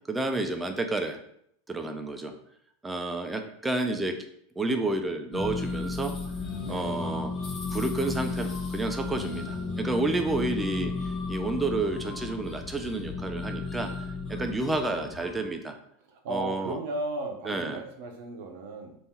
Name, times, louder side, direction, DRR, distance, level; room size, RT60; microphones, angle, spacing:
voice 1, 0.1-1.2 1.7-2.3 2.8-4.1 4.6-6.1 6.7-7.3 7.7-13.9 14.3-15.8 16.3-16.8 17.5-17.8, right 2 dB, 15° right, 6 dB, 0.6 m, -30 dB
sound 1, 5.3-15.4, left 3 dB, 30° left, 1.4 m, -34 dB
voice 2, 6.6-7.0 16.1-19.0, right 2 dB, 65° right, 4 dB, 0.7 m, -35 dB
3.5 x 2.6 x 4.3 m, 0.70 s
hypercardioid pair, 95°, 0 cm